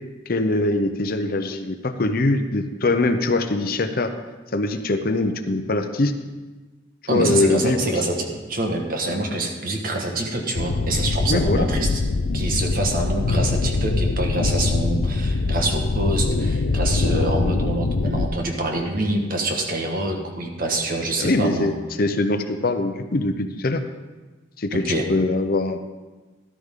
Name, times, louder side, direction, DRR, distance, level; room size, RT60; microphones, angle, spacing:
voice 1, 0.3-4.1 4.5-6.1 7.1-7.8 11.3-11.7 21.2-23.8 24.6-25.9, left 2 dB, 50° left, 8 dB, 0.7 m, -22 dB
voice 2, 7.1-11.9 12.3-21.7 24.7-25.1, right 2 dB, 50° right, 2 dB, 1.6 m, -26 dB
sound 1, 10.5-18.3, left 3 dB, 90° left, 0.6 m, -23 dB
13.0 x 12.5 x 3.7 m, 1.3 s
head